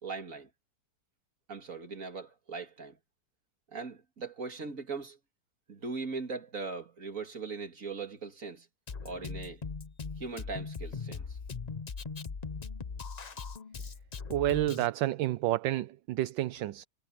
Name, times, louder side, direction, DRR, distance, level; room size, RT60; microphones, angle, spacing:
voice 1, 0.0-0.5 1.5-3.0 3.7-5.2 5.7-8.7 9.0-9.6 10.2-11.4, right 4 dB, 40° right, 3.0 m, -39 dB
Drum kit, 8.9-14.9, left 5 dB, 70° left, 0.3 m, -40 dB
voice 2, 14.3-16.8, right 15 dB, 75° right, 1.3 m, -30 dB
omnidirectional pair, 2.2 m